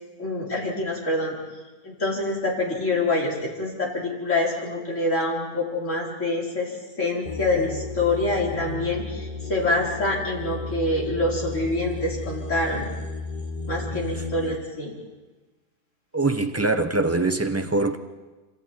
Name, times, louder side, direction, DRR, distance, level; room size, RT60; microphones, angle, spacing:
voice 1, 0.2-1.4 1.8-12.9 13.7-14.9, left 2 dB, 50° left, 4.7 m, -26 dB
sound 1, 7.2-14.5, left 3 dB, 30° left, 1.4 m, -34 dB
voice 2, 16.1-18.0, right 2 dB, 15° right, 0.6 m, -23 dB
26.5 x 26.0 x 4.5 m
omnidirectional pair, 1.7 m